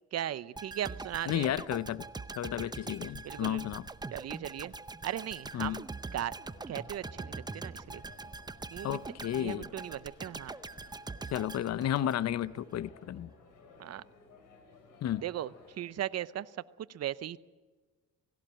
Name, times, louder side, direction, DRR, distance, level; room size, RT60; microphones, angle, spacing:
voice 1, 0.1-1.5 3.2-3.7 4.1-4.7 5.0-5.9 6.1-6.3 6.7-8.0 8.7-9.0 9.3-10.5 13.8-14.0 15.2-16.5 16.8-17.4, right 11 dB, 55° right, 0.7 m, -37 dB
sound 1, 0.6-12.6 12.9-13.0, right 3 dB, 15° right, 0.6 m, -43 dB
voice 2, 1.3-2.0 2.4-3.9 5.5-5.8 8.8-9.6 11.3-13.3 15.0-15.2, left 11 dB, 60° left, 0.7 m, -32 dB
sound 2, 4.6-15.8, left 4 dB, 85° left, 3.9 m, -58 dB
18.0 x 16.5 x 8.8 m
cardioid pair, 90°, 30 cm